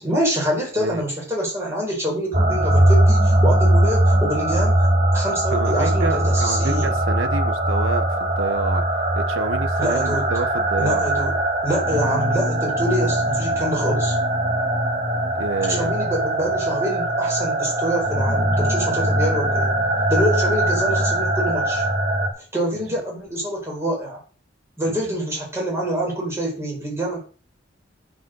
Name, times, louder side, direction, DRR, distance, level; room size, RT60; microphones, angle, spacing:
voice 1, 0.0-7.0 9.8-10.3 10.8-11.3 11.6-14.2 15.7-19.7 20.1-21.8 22.5-24.2 24.8-27.2, equal, 15° right, 4.9 m, -26 dB
sound 1, 2.3-22.3, right 1 dB, 35° right, 1.8 m, -20 dB
voice 2, 5.5-8.8 9.2-11.1 15.3-15.9 24.9-25.0, right 3 dB, 90° right, 1.2 m, -28 dB
9.4 x 5.4 x 6.4 m
head